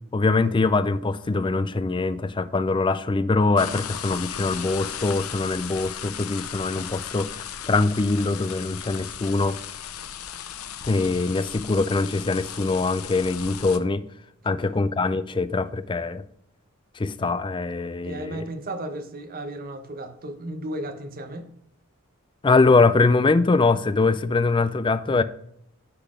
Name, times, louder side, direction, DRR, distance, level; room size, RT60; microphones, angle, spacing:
voice 1, 0.1-7.3 7.7-9.6 10.9-14.0 14.5-16.2 17.0-18.4 22.4-25.2, left 3 dB, 20° left, 0.4 m, -23 dB
sound 1, 3.6-13.8, left 9 dB, 75° left, 0.7 m, -36 dB
voice 2, 18.0-21.5, right 1 dB, 40° right, 0.9 m, -34 dB
9.9 x 4.1 x 4.9 m
head